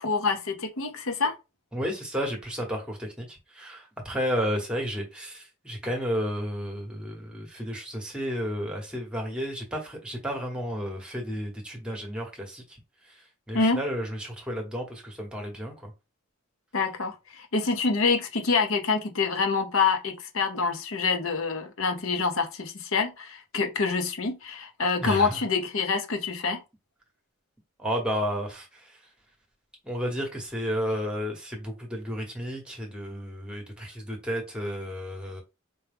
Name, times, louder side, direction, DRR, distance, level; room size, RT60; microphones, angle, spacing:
voice 1, 0.0-1.4 13.5-13.8 16.7-26.6, left 4 dB, 65° left, 0.8 m, -26 dB
voice 2, 1.7-12.8 13.0-15.9 25.0-25.4 27.8-29.0 29.8-35.4, equal, 5° right, 1.0 m, -32 dB
4.5 x 2.2 x 3.4 m
head